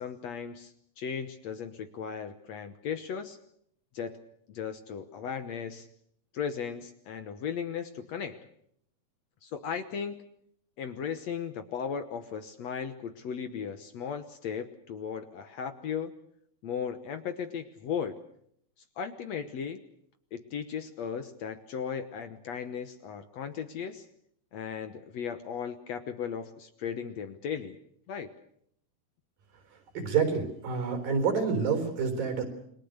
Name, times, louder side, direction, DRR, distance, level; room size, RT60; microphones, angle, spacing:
voice 1, 0.0-3.4 3.9-4.2 4.5-5.9 6.3-8.5 9.4-10.2 10.8-16.1 16.6-18.2 19.0-19.8 20.3-24.1 24.5-27.8 28.1-28.3, left 7 dB, 65° left, 9 dB, 2.0 m, -36 dB
voice 2, 30.0-32.5, right 5 dB, 80° right, 7 dB, 5.7 m, -28 dB
29.0 x 22.0 x 6.6 m, 0.70 s
omnidirectional pair, 4.0 m